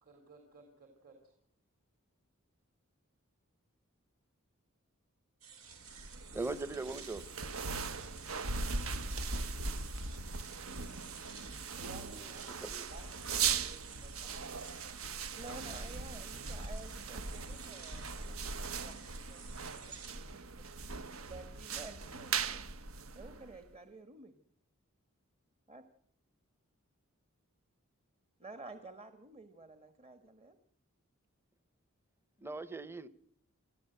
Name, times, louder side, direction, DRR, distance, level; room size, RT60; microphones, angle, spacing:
voice 1, 0.0-1.2 11.8-15.0 15.3-15.4, right 3 dB, 45° right, 3.8 m, -56 dB
sound 1, 5.4-20.1, right 6 dB, 90° right, 3.9 m, -53 dB
sound 2, 5.8-23.7, right 5 dB, 75° right, 1.2 m, -39 dB
voice 2, 6.3-7.3 12.0-12.9 32.4-33.1, right 3 dB, 10° right, 0.8 m, -40 dB
voice 3, 15.4-18.4 18.8-19.4 19.9-20.0 20.6-22.6 23.1-24.4 25.7-25.8 28.4-30.6, right 2 dB, 30° right, 1.4 m, -51 dB
27.0 x 15.0 x 7.9 m
head